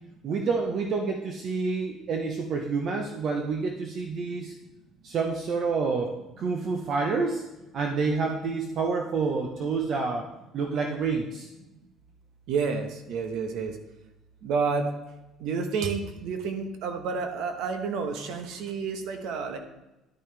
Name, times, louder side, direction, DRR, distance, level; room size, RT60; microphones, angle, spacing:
voice 1, 0.2-4.5 5.0-7.4 7.7-11.5, right 4 dB, 40° right, 2 dB, 0.8 m, -28 dB
voice 2, 12.5-13.8 14.4-14.9 15.4-19.6, right 5 dB, 65° right, 6 dB, 1.1 m, -30 dB
10.5 x 9.2 x 3.3 m, 0.99 s
cardioid pair, 170°, 0 cm